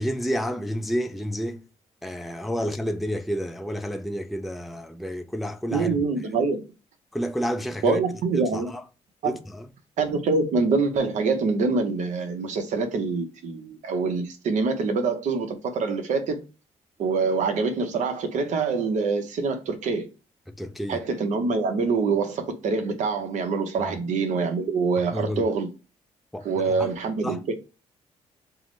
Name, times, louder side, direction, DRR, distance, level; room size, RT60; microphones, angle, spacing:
voice 1, 0.0-1.6 2.0-6.0 7.1-8.0 8.3-8.8 9.2-9.7 20.6-21.0 23.8-23.9 25.1-25.4 26.3-26.9 27.2-27.4, equal, ahead, 0.3 m, -30 dB
voice 2, 5.7-6.6 7.8-8.7 9.2-9.3 10.0-16.4 17.0-20.1 20.9-25.7 26.4-27.5, right 4 dB, 75° right, 0.8 m, -25 dB
5.5 x 2.0 x 3.2 m
cardioid pair, 95°, 13 cm